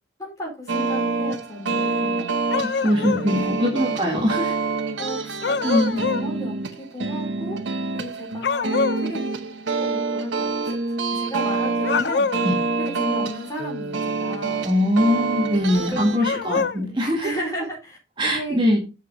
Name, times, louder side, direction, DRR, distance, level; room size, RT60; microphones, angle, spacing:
voice 1, 0.2-2.4 3.0-3.5 5.0-9.2 9.8-10.5 11.1-12.3 12.8-14.6 15.7-16.3 17.2-18.6, equal, 20° left, -2 dB, 4.6 m, -34 dB
sound 1, 0.7-16.2, right 3 dB, 80° right, 0.9 m, -27 dB
sound 2, 2.5-3.3 5.4-6.3 8.4-9.1 11.8-12.6 16.2-16.8, left 5 dB, 65° left, 0.5 m, -24 dB
voice 2, 2.6-4.5 5.6-6.0 12.4-12.5 14.6-17.3 18.2-18.8, left 1 dB, 25° right, -1 dB, 1.8 m, -22 dB
8.0 x 6.5 x 4.0 m, 0.28 s
head